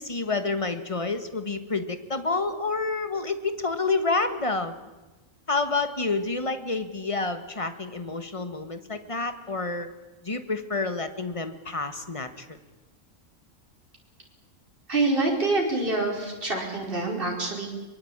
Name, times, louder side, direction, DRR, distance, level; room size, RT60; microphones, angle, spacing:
voice 1, 0.0-4.7 5.5-9.9 10.2-12.6, left 3 dB, 25° left, 10 dB, 1.6 m, -29 dB
voice 2, 14.9-17.7, right 2 dB, 40° right, -1 dB, 5.2 m, -26 dB
23.5 x 22.0 x 8.8 m, 1.1 s
omnidirectional pair, 1.4 m